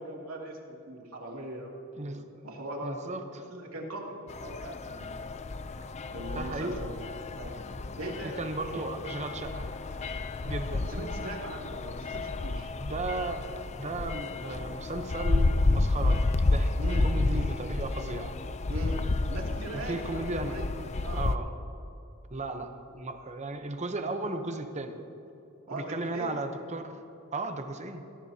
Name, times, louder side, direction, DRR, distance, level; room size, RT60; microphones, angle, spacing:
voice 1, 0.0-1.7 2.4-3.1 3.5-5.2 6.1-6.9 7.3-7.6 8.0-8.8 10.9-12.7 16.8-17.1 17.5-17.6 18.7-20.7 21.0-21.2 25.7-26.3, right 1 dB, 85° right, -2 dB, 2.8 m, -40 dB
voice 2, 2.8-3.4 6.3-6.8 8.2-9.7 10.4-10.9 12.8-13.4 13.8-16.7 17.0-18.4 19.7-20.6 21.1-21.5 22.3-25.0 25.7-27.0 27.3-28.0, right 2 dB, 35° right, 7 dB, 0.9 m, -35 dB
sound 1, 4.3-21.4, left 2 dB, 30° left, 0.5 m, -31 dB
21.5 x 17.5 x 2.9 m, 2.9 s
head